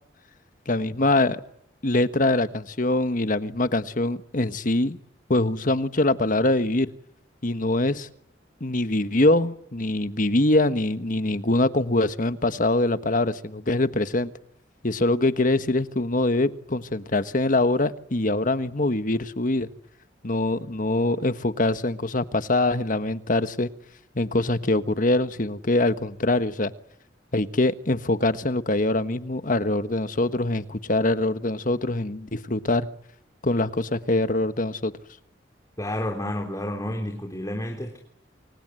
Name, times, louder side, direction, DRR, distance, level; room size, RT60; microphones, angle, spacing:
voice 1, 0.7-1.4 1.8-5.0 5.3-6.9 7.4-8.1 8.6-14.3 14.8-19.7 20.2-23.7 24.1-26.7 27.3-32.9 33.4-34.9, left 2 dB, 45° left, 11 dB, 1.4 m, -23 dB
voice 2, 35.8-38.0, left 1 dB, 20° left, 2 dB, 3.6 m, -30 dB
29.0 x 24.5 x 7.9 m, 0.75 s
head